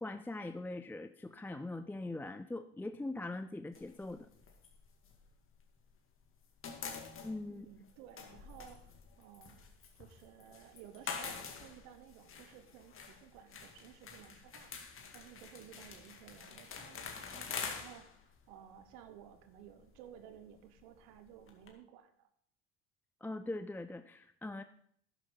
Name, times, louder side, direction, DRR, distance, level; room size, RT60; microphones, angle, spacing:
voice 1, 0.0-4.3 7.2-7.7 23.2-24.6, left 2 dB, 5° left, 10 dB, 0.5 m, -41 dB
sound 1, 3.7-6.0 6.3-21.7, left 5 dB, 40° left, 2.3 m, -47 dB
voice 2, 7.5-9.7 9.9-14.7 15.1-18.2 18.5-22.3, right 10 dB, 70° right, 10 dB, 1.2 m, -56 dB
12.5 x 10.5 x 3.9 m, 0.65 s
hypercardioid pair, 75°, 33 cm